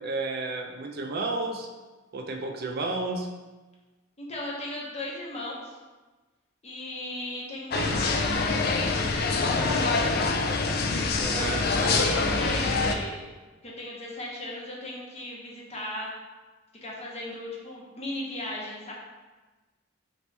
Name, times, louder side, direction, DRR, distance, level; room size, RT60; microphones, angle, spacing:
voice 1, 0.0-1.7 2.1-3.3 7.7-8.0 11.1-11.7, right 3 dB, 55° right, 3 dB, 0.4 m, -32 dB
voice 2, 4.2-5.7 6.6-9.7 10.0-10.5 11.1-13.2 13.6-16.1 16.8-18.9, left 1 dB, 35° left, -3 dB, 0.9 m, -37 dB
sound 1, 7.7-12.9, left 3 dB, 55° left, 0.4 m, -25 dB
4.0 x 3.0 x 3.3 m, 1.2 s
head